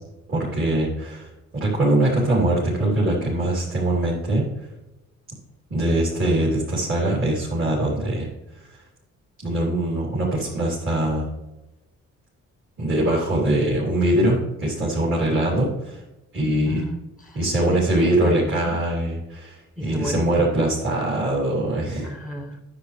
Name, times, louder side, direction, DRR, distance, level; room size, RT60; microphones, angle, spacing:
voice 1, 0.3-4.7 5.7-8.3 8.7-8.8 9.4-11.3 12.8-16.0 16.3-16.8 17.3-22.1, right 1 dB, 45° right, -7 dB, 3.5 m, -22 dB
voice 2, 16.7-18.8 19.8-20.6 22.0-22.6, equal, ahead, 5 dB, 0.9 m, -32 dB
9.8 x 8.0 x 3.4 m, 0.99 s
cardioid pair, 90°, 30 cm